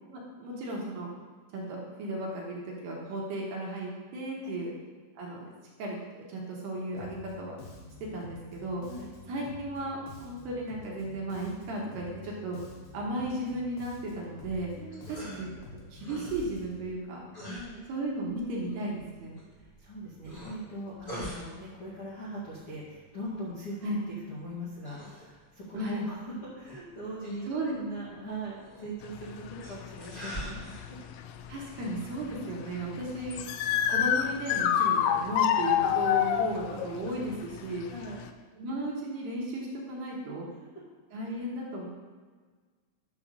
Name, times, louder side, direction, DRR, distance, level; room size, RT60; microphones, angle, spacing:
voice 1, 0.1-1.1 1.5-4.7 5.2-5.5 5.8-6.0 6.3-7.6 8.1-8.8 9.3-12.6 12.9-14.7 15.1-15.5 15.9-17.2 17.9-19.4 23.8-24.0 25.7-26.1 27.5-27.8 31.5-33.4 33.9-37.9 38.6-40.5 41.1-41.9, right 1 dB, 70° right, -3 dB, 3.1 m, -35 dB
Bass guitar, 7.0-16.9, left 3 dB, 70° left, 2.7 m, -48 dB
sound 1, 14.4-33.0, right 1 dB, 15° left, 2.0 m, -47 dB
voice 2, 14.7-15.4 17.4-17.8 19.6-23.9 24.3-27.4 27.7-31.0 33.1-33.3 37.9-38.3 41.3-41.4, right 1 dB, 45° left, -11 dB, 1.7 m, -41 dB
sound 2, 29.0-38.3, left 9 dB, 85° left, 2.7 m, -29 dB
11.0 x 3.6 x 6.7 m, 1.5 s
omnidirectional pair, 5.4 m